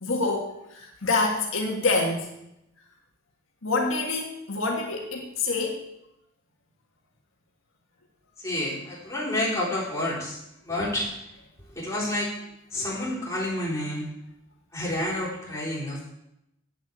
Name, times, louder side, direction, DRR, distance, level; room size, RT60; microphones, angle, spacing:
voice 1, 0.0-2.3 3.6-5.9, left 3 dB, 75° left, 0 dB, 1.7 m, -26 dB
voice 2, 8.4-10.4 10.6-11.1 11.7-12.4 12.7-14.1 14.7-16.1, left 1 dB, 15° left, -7 dB, 3.7 m, -29 dB
8.6 x 7.0 x 8.1 m, 0.85 s
head